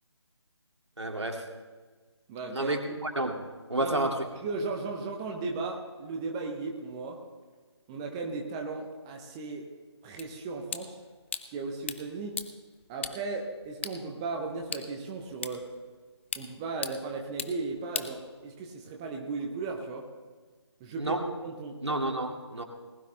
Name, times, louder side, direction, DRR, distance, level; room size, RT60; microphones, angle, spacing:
voice 1, 1.0-1.5 2.5-4.2 21.0-21.3 21.8-22.6, right 1 dB, 70° right, 3 dB, 2.3 m, -30 dB
voice 2, 2.3-2.7 3.8-4.1 4.4-7.2 7.9-9.7 10.0-11.0 11.5-12.4 12.9-15.7 16.4-20.1 20.8-21.2 21.4-21.8, right 3 dB, 10° right, 2 dB, 0.7 m, -36 dB
sound 1, 10.2-18.8, left 6 dB, 25° left, 0.6 m, -41 dB
20.0 x 12.0 x 3.3 m, 1.3 s
figure-of-eight pair, 155°, 15 cm